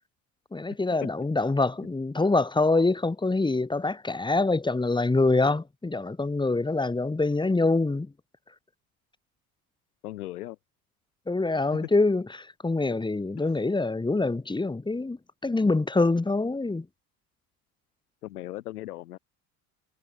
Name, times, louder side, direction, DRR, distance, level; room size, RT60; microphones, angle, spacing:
voice 1, 0.5-8.1 11.3-15.2 15.4-16.9, left 3 dB, 10° left, 1.5 m, -25 dB
voice 2, 10.0-10.6 13.5-13.6 18.2-19.2, left 15 dB, 85° left, 3.6 m, -38 dB
hypercardioid pair, 75°, 45 cm